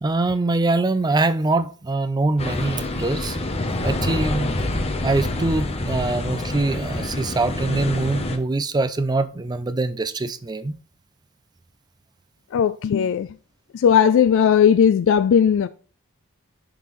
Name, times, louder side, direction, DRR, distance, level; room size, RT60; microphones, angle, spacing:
voice 1, 0.0-3.4 3.8-4.5 5.0-10.7, right 2 dB, 20° right, 0.4 m, -23 dB
sound 1, 2.4-8.4, left 2 dB, 30° left, 0.7 m, -27 dB
voice 2, 12.5-13.3 13.7-15.7, left 8 dB, 60° left, 0.3 m, -17 dB
10.5 x 3.8 x 3.1 m
head